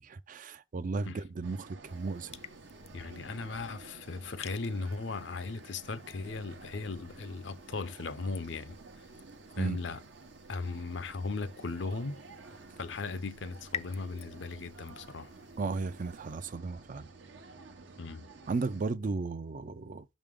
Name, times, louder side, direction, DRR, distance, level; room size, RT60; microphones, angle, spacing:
voice 1, 0.0-2.4 9.6-9.8 15.6-17.1 18.5-20.1, right 3 dB, 45° right, 0.4 m, -35 dB
sound 1, 1.4-18.8, right 3 dB, 75° right, 0.9 m, -52 dB
sound 2, 1.8-16.4, left 9 dB, 35° left, 0.4 m, -51 dB
voice 2, 2.9-8.8 9.6-10.0 10.5-12.2 12.8-15.3 18.0-18.3, left 3 dB, 75° left, 0.6 m, -37 dB
5.7 x 5.1 x 3.6 m
head